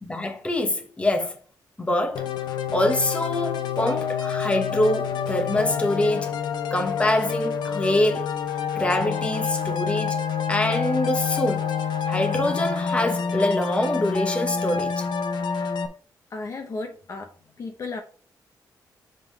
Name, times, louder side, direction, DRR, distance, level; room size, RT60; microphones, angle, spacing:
voice 1, 0.0-1.3 1.8-2.3 2.7-6.3 6.7-8.3 8.8-10.2 10.5-11.7 12.1-15.0, left 1 dB, 15° left, 1.1 m, -25 dB
sound 1, 2.2-15.9, left 7 dB, 85° left, 0.8 m, -27 dB
voice 2, 16.3-17.3 17.6-18.0, left 3 dB, 45° left, 0.8 m, -34 dB
7.5 x 3.7 x 4.5 m
wide cardioid pair, 145°, 7 cm